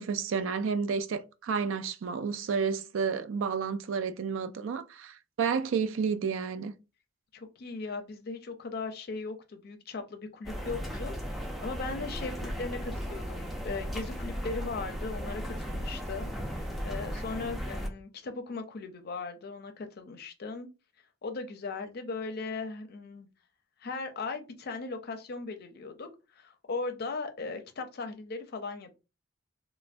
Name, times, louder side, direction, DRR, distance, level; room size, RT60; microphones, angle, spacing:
voice 1, 0.0-6.7, right 6 dB, 80° right, 0.3 m, -31 dB
voice 2, 7.3-16.3 16.5-20.7 21.2-23.3 23.8-28.9, left 4 dB, 55° left, 0.5 m, -38 dB
sound 1, 10.4-17.9, equal, ahead, 0.4 m, -36 dB
3.2 x 2.1 x 2.5 m
head